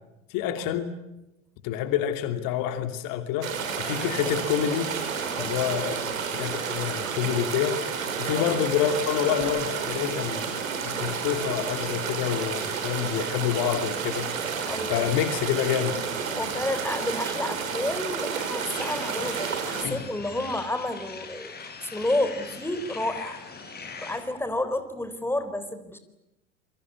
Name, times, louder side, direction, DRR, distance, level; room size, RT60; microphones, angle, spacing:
voice 1, 0.3-0.9 1.6-3.5 3.8-4.9 5.4-7.8 8.2-10.5 10.8-14.3 14.9-16.0 19.8-20.0, left 10 dB, 55° left, 8 dB, 2.9 m, -27 dB
sound 1, 3.4-19.9, right 6 dB, 80° right, 5.5 m, -31 dB
voice 2, 5.4-5.7 8.3-8.5 14.6-15.1 16.4-23.4 24.0-26.0, left 1 dB, 5° left, 10 dB, 4.0 m, -30 dB
sound 2, 18.7-24.2, left 5 dB, 25° left, 7.7 m, -41 dB
27.5 x 24.5 x 8.4 m, 0.95 s
figure-of-eight pair, 75°, 40 cm